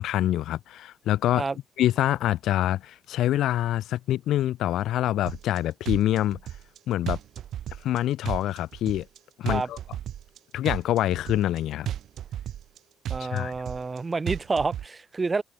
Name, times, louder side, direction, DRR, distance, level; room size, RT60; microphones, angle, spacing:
voice 1, 0.0-1.4 1.8-6.4 6.9-7.2 7.8-9.1 9.4-9.8 10.5-11.9 13.2-13.5, left 13 dB, 80° left, 7.0 m, -25 dB
sound 1, 5.3-5.6 5.8-6.8 7.1-8.0 8.2-9.2 9.5-10.4 10.6-11.6 11.9-12.8 13.0-14.0 14.3-14.9, right 11 dB, 70° right, 1.9 m, -33 dB
voice 2, 13.1-15.4, right 4 dB, 30° right, 6.2 m, -28 dB
cardioid pair, 90°, 0 cm